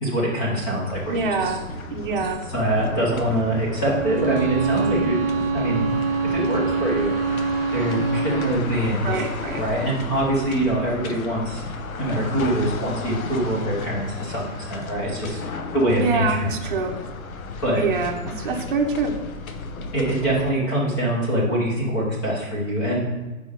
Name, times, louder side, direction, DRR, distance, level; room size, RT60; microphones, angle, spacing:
voice 1, 0.0-1.5 2.5-5.2 5.5-5.9 6.2-7.1 7.7-9.3 9.6-11.6 12.0-16.2 17.6-17.8 19.9-23.0, right 1 dB, 10° left, -5 dB, 0.8 m, -24 dB
sound 1, 0.9-20.5, left 3 dB, 80° left, 1.0 m, -34 dB
voice 2, 1.1-1.6 1.9-2.4 9.0-9.6 16.0-16.9 17.8-19.1, right 4 dB, 35° right, 2 dB, 0.8 m, -25 dB
Bowed string instrument, 3.8-8.7, right 5 dB, 55° right, 0.5 m, -24 dB
5.0 x 4.9 x 5.5 m, 1.2 s
hypercardioid pair, 175°, 42 cm